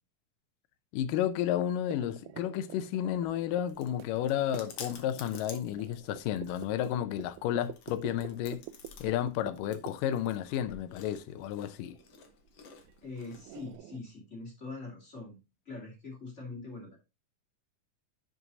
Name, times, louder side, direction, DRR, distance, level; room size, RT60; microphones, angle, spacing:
voice 1, 0.9-8.6 9.0-12.0, left 11 dB, 80° left, 2.3 m, -32 dB
sound 1, 1.8-13.1 13.3-14.0, right 14 dB, 80° right, 1.8 m, -48 dB
Chewing mastication, 3.1-13.8, left 6 dB, 60° left, 1.8 m, -52 dB
voice 2, 13.0-15.4 15.7-17.0, left 3 dB, 25° left, 2.3 m, -43 dB
11.0 x 6.0 x 2.7 m
omnidirectional pair, 3.9 m